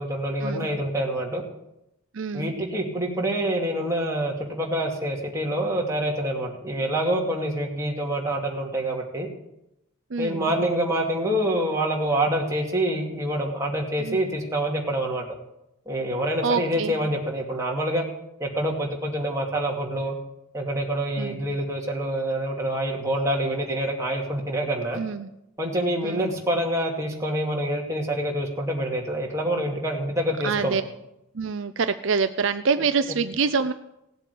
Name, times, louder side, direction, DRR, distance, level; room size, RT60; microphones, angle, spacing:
voice 1, 0.0-1.4 2.3-9.3 10.2-15.3 15.9-18.0 18.4-20.1 20.5-25.0 25.6-30.8, right 1 dB, 15° right, -1 dB, 2.4 m, -26 dB
voice 2, 2.1-2.5 10.1-10.5 14.0-14.2 16.4-17.0 21.2-21.4 24.9-25.3 26.0-26.2 30.4-30.8 31.3-33.7, right 5 dB, 60° right, 10 dB, 0.6 m, -26 dB
17.0 x 8.0 x 8.5 m, 0.86 s
head